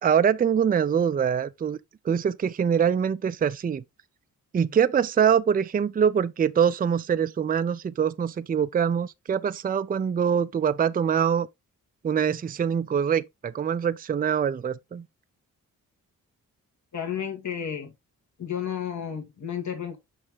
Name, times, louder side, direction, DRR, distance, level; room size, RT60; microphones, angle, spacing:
voice 1, 0.0-1.8 2.0-3.8 4.5-11.5 12.0-15.1, right 7 dB, 25° right, 0.4 m, -24 dB
voice 2, 16.9-17.9 18.4-20.0, left 8 dB, 55° left, 1.6 m, -32 dB
6.5 x 4.9 x 3.6 m
cardioid pair, 80°, 35 cm